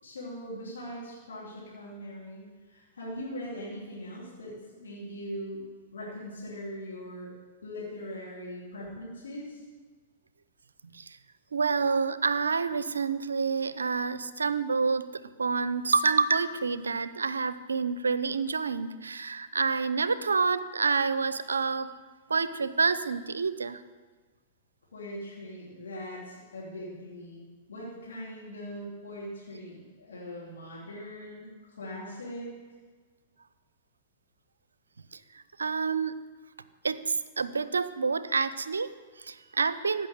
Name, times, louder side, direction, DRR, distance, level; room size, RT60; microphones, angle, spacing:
voice 1, 0.0-5.6 5.9-7.3 7.6-9.6 24.9-27.4 27.7-31.5 31.8-32.5, equal, 80° left, -6 dB, 2.8 m, -41 dB
voice 2, 11.5-21.9 22.3-23.8 35.1-36.2 36.8-40.1, right 4 dB, 85° right, 15 dB, 0.5 m, -28 dB
15.5 x 5.9 x 6.6 m, 1.4 s
figure-of-eight pair, 105°, 0 cm